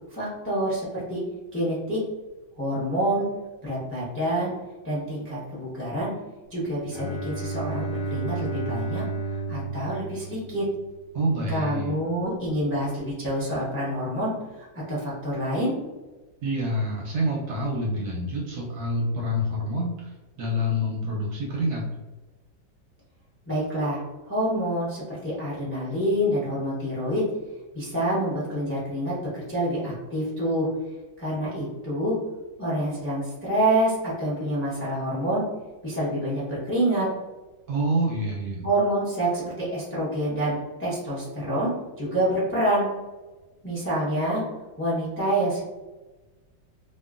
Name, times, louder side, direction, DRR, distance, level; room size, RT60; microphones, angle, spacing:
voice 1, 0.1-1.2 1.5-2.0 2.6-3.3 3.6-4.5 4.8-6.1 6.5-9.0 9.3-10.7 11.5-14.3 14.6-15.7 23.5-27.2 27.7-30.7 31.2-32.2 32.6-35.4 35.8-37.1 38.6-42.9 43.6-44.4 44.8-45.6, right 1 dB, 20° left, -8 dB, 0.3 m, -27 dB
Bowed string instrument, 6.9-10.9, right 3 dB, 65° left, 0.8 m, -32 dB
voice 2, 11.1-12.0 16.4-20.1 20.4-21.9 37.7-38.7, equal, 70° right, -3 dB, 1.0 m, -27 dB
2.9 x 2.4 x 2.4 m, 1.2 s
omnidirectional pair, 2.1 m